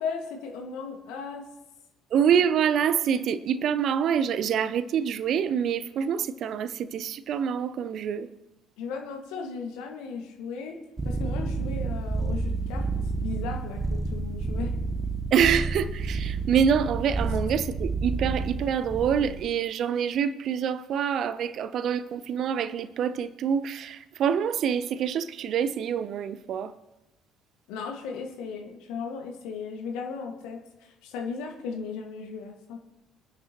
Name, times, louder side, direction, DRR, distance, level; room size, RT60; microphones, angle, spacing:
voice 1, 0.0-1.5 8.8-12.9 13.2-14.8 17.3-17.4 27.7-32.8, left 5 dB, 60° left, 1.8 m, -36 dB
voice 2, 2.1-8.3 15.3-23.9 24.2-26.7, right 8 dB, 50° right, 0.7 m, -26 dB
sound 1, 11.0-19.5, right 3 dB, 20° right, 1.0 m, -30 dB
26.0 x 9.8 x 3.0 m
figure-of-eight pair, 50°, 0 cm